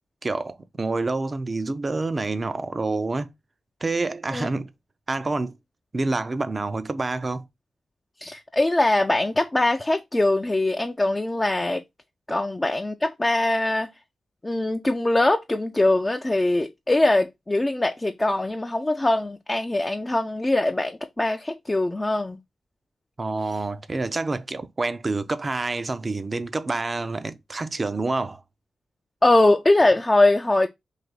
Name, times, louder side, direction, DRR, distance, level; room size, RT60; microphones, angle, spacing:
voice 1, 0.2-3.3 3.8-4.7 5.1-5.5 5.9-7.4 23.2-28.4, right 3 dB, 40° right, 0.5 m, -27 dB
voice 2, 8.2-11.8 12.3-13.9 14.4-22.4 29.2-30.7, left 2 dB, 25° left, 0.4 m, -22 dB
3.3 x 2.6 x 3.9 m
supercardioid pair, 50°, 0 cm